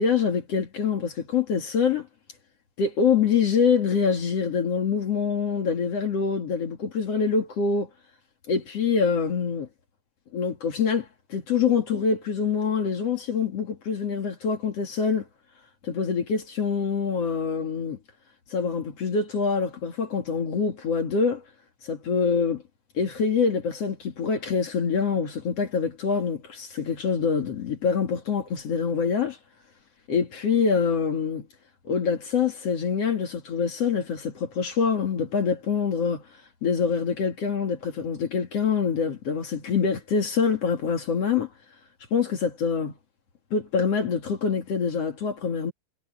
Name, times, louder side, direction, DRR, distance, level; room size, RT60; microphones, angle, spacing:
voice 1, 0.0-2.1 2.8-7.9 8.5-9.7 10.3-15.2 15.8-18.0 18.5-21.4 21.8-22.6 22.9-29.4 30.1-31.5 31.8-36.2 36.6-41.5 42.1-42.9 43.5-45.7, left 6 dB, 45° left, 2.2 m, -25 dB
omnidirectional pair, 5.6 m